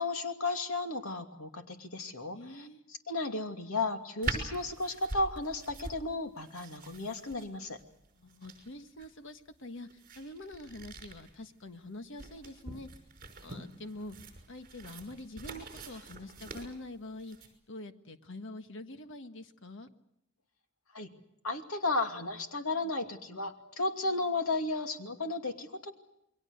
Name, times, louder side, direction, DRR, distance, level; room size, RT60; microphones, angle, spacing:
voice 1, 0.0-2.7 3.1-7.8 20.9-21.1 21.4-25.9, left 2 dB, 85° left, 5 dB, 2.6 m, -34 dB
voice 2, 2.3-2.8 8.2-9.9 10.2-12.9 13.4-14.2 14.5-17.4 17.7-19.9, left 1 dB, 60° left, 8 dB, 1.5 m, -45 dB
sound 1, 4.2-17.5, right 3 dB, 40° right, 5.8 m, -44 dB
28.5 x 22.5 x 6.6 m, 0.82 s
head